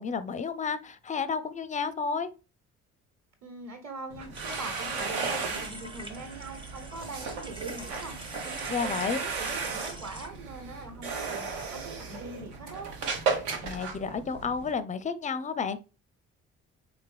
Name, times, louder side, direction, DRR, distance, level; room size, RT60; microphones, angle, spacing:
voice 1, 0.0-2.3 8.7-9.2 13.6-15.8, left 5 dB, 20° left, 0.4 m, -31 dB
voice 2, 3.4-12.9, right 3 dB, 40° right, 1.3 m, -43 dB
sound 1, 4.1-14.7, right 4 dB, 70° right, 0.9 m, -35 dB
sound 2, 4.3-10.3, right 1 dB, 10° right, 0.8 m, -45 dB
4.3 x 3.5 x 3.4 m
figure-of-eight pair, 45°, 41 cm